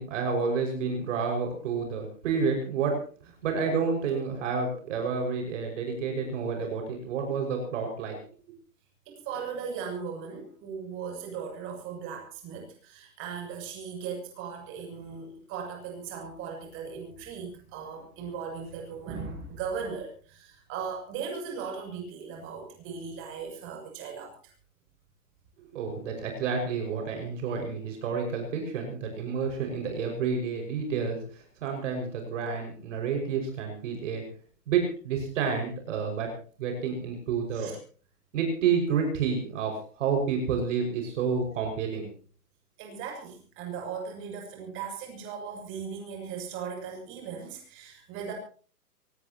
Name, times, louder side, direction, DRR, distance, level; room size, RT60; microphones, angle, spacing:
voice 1, 0.0-3.0 3.4-8.2 25.7-34.2 34.7-36.3 36.6-37.7 38.3-42.1, right 5 dB, 50° right, 3 dB, 6.0 m, -29 dB
voice 2, 9.1-24.5 37.5-37.8 42.8-48.3, right 6 dB, 25° right, 2 dB, 7.4 m, -38 dB
24.0 x 19.5 x 3.0 m, 0.42 s
hypercardioid pair, 155°, 46 cm